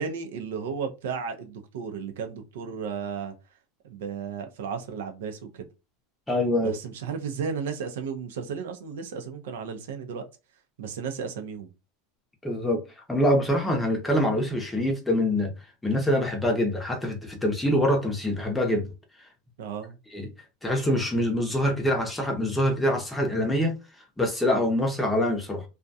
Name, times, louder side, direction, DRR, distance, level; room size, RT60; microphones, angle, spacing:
voice 1, 0.0-3.3 3.8-5.7 6.6-10.2 10.8-11.7 19.6-20.0, right 6 dB, 85° right, 0.6 m, -34 dB
voice 2, 6.3-6.7 12.4-12.8 13.1-15.5 15.8-18.9 20.1-20.3 20.6-23.7 24.2-25.6, left 1 dB, 5° left, 0.6 m, -25 dB
2.4 x 2.2 x 2.6 m
supercardioid pair, 145°, 0 cm